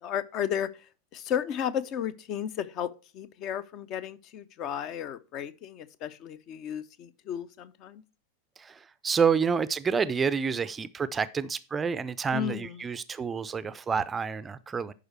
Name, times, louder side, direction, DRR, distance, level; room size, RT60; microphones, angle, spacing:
voice 1, 0.0-8.0 12.3-12.8, left 9 dB, 35° left, 0.7 m, -34 dB
voice 2, 8.6-14.9, right 6 dB, 15° right, 0.5 m, -28 dB
11.0 x 4.9 x 4.5 m
figure-of-eight pair, 90°, 0 cm